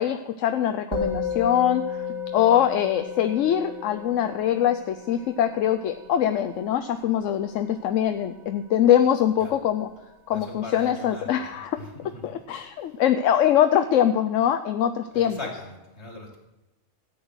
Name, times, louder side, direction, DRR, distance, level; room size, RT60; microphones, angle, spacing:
voice 1, 0.0-2.0 2.3-9.9 10.3-11.8 12.2-15.4, left 10 dB, 85° left, 7 dB, 1.0 m, -23 dB
Musical instrument, 0.9-10.4, left 5 dB, 70° right, 2.3 m, -35 dB
voice 2, 10.3-11.4 11.8-12.2 15.1-16.4, left 2 dB, 60° left, 1 dB, 3.0 m, -39 dB
13.5 x 8.8 x 6.3 m, 1.0 s
omnidirectional pair, 1.3 m